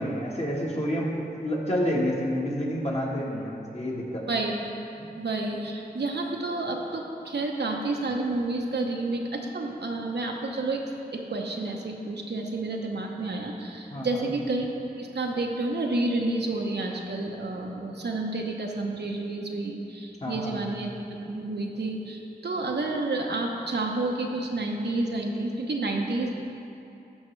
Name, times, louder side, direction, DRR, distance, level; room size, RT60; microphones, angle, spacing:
voice 1, 0.0-4.2 5.0-5.1 13.9-14.3 20.2-20.6, equal, 40° left, -3 dB, 1.5 m, -29 dB
voice 2, 5.2-10.8 11.1-26.4, right 2 dB, 80° right, 1 dB, 0.8 m, -30 dB
13.5 x 5.5 x 3.2 m, 2.8 s
wide cardioid pair, 50°, 17 cm